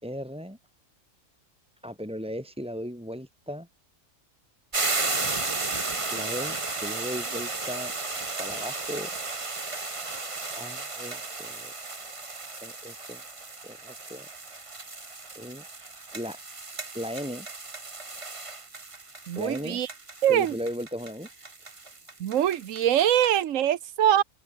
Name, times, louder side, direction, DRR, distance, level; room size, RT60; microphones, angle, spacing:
voice 1, 0.0-0.6 1.8-3.7 6.1-7.9 8.4-9.1 10.5-11.7 12.6-13.2 13.6-14.3 15.4-15.6 16.1-16.4 16.9-17.5 19.4-19.8 20.3-21.3, equal, 5° right, 3.9 m, -36 dB
sound 1, 4.7-23.4, right 3 dB, 25° right, 1.3 m, -34 dB
voice 2, 19.3-19.9 20.2-20.5 22.2-24.2, right 11 dB, 80° right, 1.2 m, -23 dB
open air
omnidirectional pair, 1.3 m